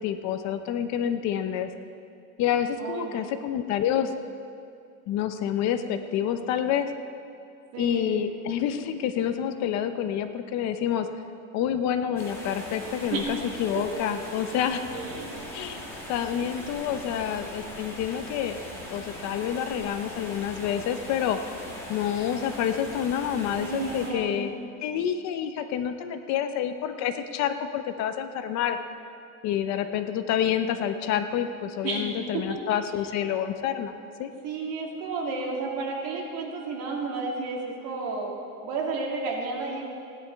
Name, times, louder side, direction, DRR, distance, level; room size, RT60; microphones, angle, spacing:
voice 1, 0.0-1.7 2.4-4.1 5.1-6.9 7.8-11.1 11.5-14.8 15.5-15.8 16.1-18.5 18.9-21.4 21.9-24.5 24.8-28.8 29.4-33.9 34.2-34.3, left 9 dB, 50° left, 9 dB, 0.7 m, -28 dB
voice 2, 2.8-3.3 7.7-8.3 13.1-13.3 14.9-15.4 23.6-24.4 31.8-32.1 32.3-32.8 34.4-38.3 38.6-39.9, right 3 dB, 65° right, -1 dB, 2.6 m, -32 dB
sound 1, 12.2-24.1, equal, 5° left, 2.2 m, -40 dB
16.5 x 10.5 x 4.6 m, 2.5 s
cardioid pair, 175°, 36 cm